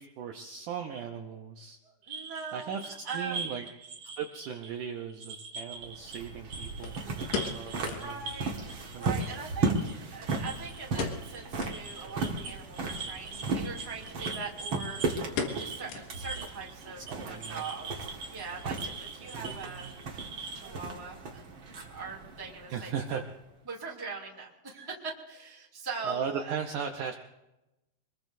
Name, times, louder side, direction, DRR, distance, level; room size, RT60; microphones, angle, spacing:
voice 1, 0.0-1.8 2.5-3.7 4.0-7.0 7.5-8.2 8.9-9.3 17.0-17.6 19.3-19.9 22.7-23.2 26.0-27.2, right 7 dB, 85° right, 3 dB, 1.8 m, -37 dB
voice 2, 1.8-3.5 7.5-8.5 8.9-19.9 20.5-21.4 21.9-22.9 23.6-26.6, right 5 dB, 10° right, -2 dB, 1.5 m, -41 dB
sound 1, 2.0-6.2 6.5-20.7, right 4 dB, 65° right, 1.3 m, -43 dB
sound 2, 4.7-4.8 6.8-8.2 8.5-8.6 8.9-9.0 9.6-10.5 10.9-11.3 11.6-11.8 12.3-12.4 13.4-13.7 14.0-14.2 14.5-14.8 15.4-16.4 16.7-16.8 17.4-17.7 18.0-18.1, left 5 dB, 75° left, 3.6 m, -37 dB
sound 3, 5.7-23.4, right 3 dB, 50° right, 1.5 m, -36 dB
25.0 x 21.0 x 2.7 m, 0.95 s
omnidirectional pair, 4.9 m